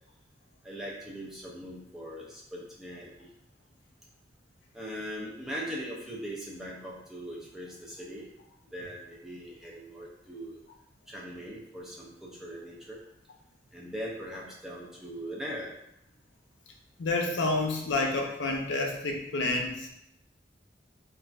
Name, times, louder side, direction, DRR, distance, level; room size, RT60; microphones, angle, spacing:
voice 1, 0.6-3.3 4.7-8.3 8.7-10.6 11.1-13.0 13.7-15.7, equal, 5° right, -5 dB, 0.4 m, -40 dB
voice 2, 17.0-19.9, left 2 dB, 80° left, 1 dB, 0.5 m, -29 dB
3.3 x 2.4 x 2.4 m, 0.80 s
head